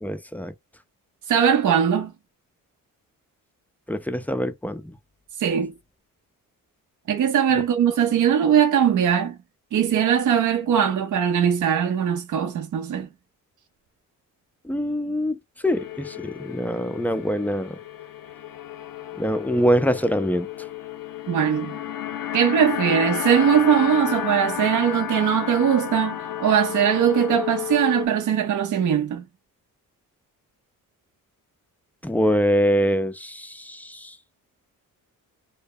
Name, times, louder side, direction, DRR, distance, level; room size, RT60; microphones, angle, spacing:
voice 1, 0.0-0.5 3.9-5.0 14.6-15.4 15.6-17.8 19.1-20.5 32.0-34.2, equal, 5° left, 0.3 m, -24 dB
voice 2, 1.3-2.1 5.4-5.7 7.1-9.4 9.7-13.1 21.3-21.7 22.3-29.2, right 8 dB, 60° right, 0.5 m, -20 dB
sound 1, 15.6-28.1, left 11 dB, 70° left, 0.6 m, -32 dB
2.1 x 2.0 x 3.5 m
cardioid pair, 75°, 35 cm